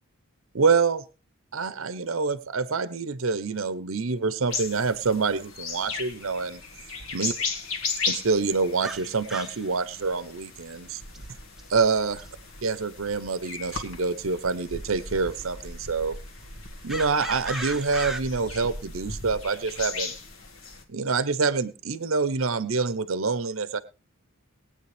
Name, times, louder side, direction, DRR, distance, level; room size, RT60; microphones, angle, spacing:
voice 1, 0.5-1.0 1.5-6.6 7.1-7.3 8.1-11.0 11.7-12.2 12.6-16.2 16.8-20.1 20.9-23.8, right 4 dB, 65° right, 15 dB, 0.8 m, -26 dB
sound 1, 4.5-20.8, left 4 dB, 65° left, 1.9 m, -37 dB
sound 2, 8.8-9.6 11.1-11.2 11.6-11.7 12.2-12.3 13.7-13.8 14.9-15.0 16.9-18.2, right 1 dB, ahead, 0.8 m, -35 dB
20.0 x 8.9 x 3.3 m, 0.32 s
head